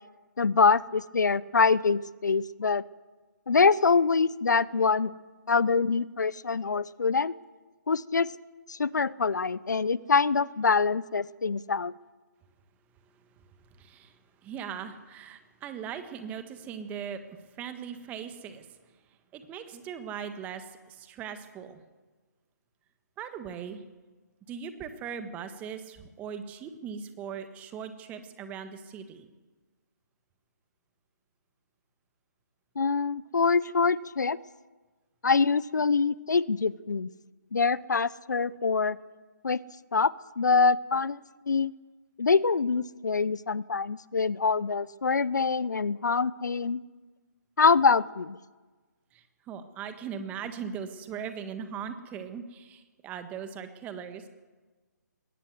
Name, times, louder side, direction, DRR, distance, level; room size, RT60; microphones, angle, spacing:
voice 1, 0.4-2.8 3.5-5.1 5.5-7.4 7.9-8.3 8.7-11.9 32.8-34.4 35.2-37.1 37.5-39.0 39.4-39.6 39.9-41.2 41.5-41.7 42.2-46.8 47.6-48.4, left 4 dB, 70° left, 20 dB, 0.7 m, -25 dB
voice 2, 13.7-17.2 17.5-18.7 19.3-21.8 23.2-23.8 24.5-29.3 49.1-54.2, right 7 dB, 15° right, 9 dB, 1.5 m, -39 dB
21.0 x 18.0 x 8.0 m, 1.3 s
figure-of-eight pair, 145°, 10 cm